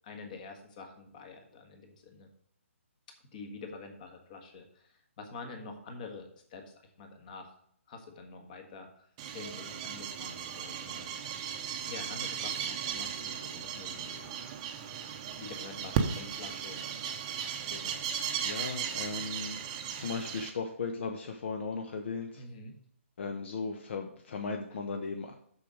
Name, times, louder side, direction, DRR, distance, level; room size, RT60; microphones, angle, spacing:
voice 1, 0.0-2.3 3.3-7.6 7.9-9.1 9.3-11.6 11.9-14.4 14.8-14.9 15.3-16.8 17.7-18.1 22.4-22.8, left 3 dB, 35° left, 4 dB, 1.6 m, -47 dB
sound 1, 9.2-20.5, right 8 dB, 25° right, 0.8 m, -36 dB
voice 2, 18.4-19.6 20.0-22.4 23.2-25.3, left 4 dB, 55° left, 4 dB, 1.0 m, -36 dB
6.8 x 6.4 x 5.0 m, 0.66 s
hypercardioid pair, 160°, 7 cm